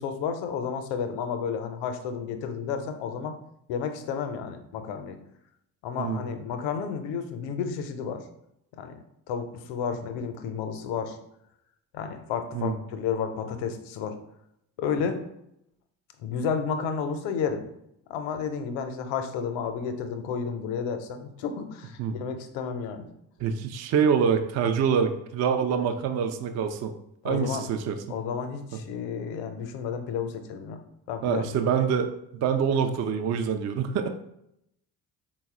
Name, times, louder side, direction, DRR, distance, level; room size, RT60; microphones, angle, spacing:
voice 1, 0.0-3.3 3.7-5.2 5.8-8.2 8.8-9.0 9.3-11.2 11.9-14.2 14.8-15.2 16.2-17.7 18.1-23.0 27.2-27.6 28.1-30.8 31.1-31.5, left 6 dB, 70° left, 7 dB, 0.6 m, -31 dB
voice 2, 6.0-6.3 12.5-12.8 22.0-22.1 23.4-26.9 27.2-28.0 31.2-34.1, right 7 dB, 35° right, 7 dB, 0.4 m, -25 dB
4.0 x 2.1 x 3.5 m, 0.78 s
hypercardioid pair, 45°, 49 cm